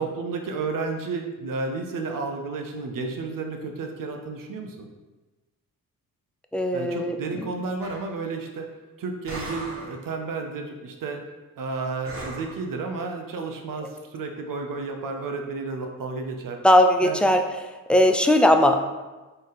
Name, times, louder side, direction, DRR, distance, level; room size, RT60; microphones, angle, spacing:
voice 1, 0.0-4.9 6.7-8.7 9.0-11.2 11.6-16.6 17.0-17.2, right 4 dB, 60° right, 3 dB, 0.8 m, -32 dB
voice 2, 6.5-7.5 16.6-17.4 17.9-18.8, left 1 dB, 5° left, 5 dB, 0.5 m, -19 dB
sound 1, 7.8-8.2 9.3-10.0 12.0-12.6, right 2 dB, 40° right, 1.3 m, -37 dB
4.0 x 3.3 x 4.0 m, 1.2 s
supercardioid pair, 50°, 37 cm